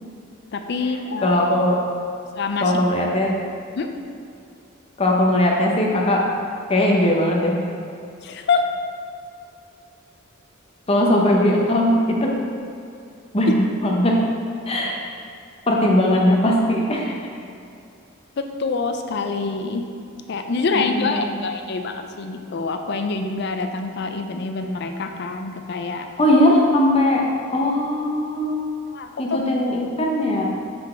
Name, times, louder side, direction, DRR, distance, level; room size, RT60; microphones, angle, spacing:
voice 1, 0.5-1.4 2.4-2.7 3.8-3.9 8.2-8.6 18.4-19.8 20.3-26.1 28.9-29.4, left 4 dB, 55° left, 6 dB, 0.4 m, -26 dB
voice 2, 1.2-1.8 2.6-3.5 5.0-6.2 6.7-7.6 10.9-12.3 13.3-13.6 13.8-14.2 14.7-14.9 15.7-17.2 20.7-21.4 26.2-28.7 29.2-30.4, left 1 dB, 30° left, -1 dB, 0.7 m, -19 dB
5.9 x 3.9 x 4.3 m, 2.5 s
head